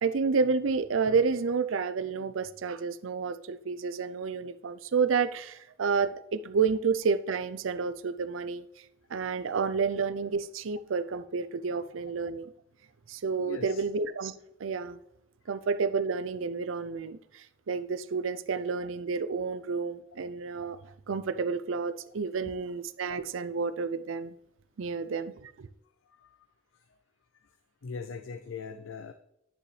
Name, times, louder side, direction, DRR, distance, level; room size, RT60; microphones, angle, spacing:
voice 1, 0.0-8.6 9.1-12.5 13.1-14.3 14.6-15.0 15.5-20.8 21.1-24.3 24.8-25.7, right 5 dB, 85° right, 0.5 m, -30 dB
voice 2, 9.1-9.5 13.4-13.8 15.5-15.6 22.4-22.5 26.1-26.4 26.7-27.0 27.4-27.5 27.8-29.1, left 5 dB, 80° left, 0.5 m, -42 dB
9.8 x 6.8 x 3.3 m
head